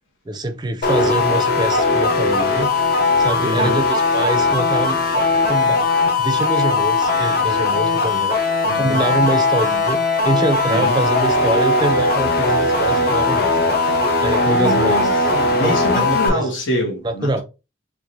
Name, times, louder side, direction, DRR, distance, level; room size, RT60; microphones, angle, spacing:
voice 1, 0.3-2.7 3.2-5.8 6.2-10.0 10.2-13.6 14.2-15.1 15.6-16.5 17.0-17.4, right 1 dB, 20° right, 0.4 m, -24 dB
sound 1, 0.8-16.3, left 3 dB, 50° left, 0.6 m, -18 dB
voice 2, 3.4-3.8 8.6-9.0 10.7-11.0 14.5-17.4, equal, 80° left, 1.2 m, -26 dB
4.6 x 2.4 x 2.7 m
head